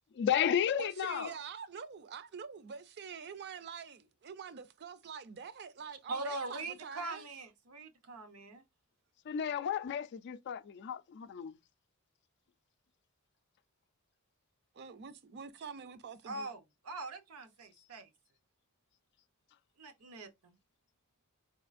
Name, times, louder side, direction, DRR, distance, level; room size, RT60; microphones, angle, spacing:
voice 1, 0.1-1.3 9.3-11.6, left 8 dB, 50° left, 0.3 m, -33 dB
voice 2, 0.8-7.2 14.7-16.5, right 6 dB, 50° right, 0.5 m, -46 dB
voice 3, 6.1-8.6 16.3-18.1 19.8-20.6, right 2 dB, 90° right, 0.8 m, -42 dB
4.3 x 2.4 x 2.5 m
head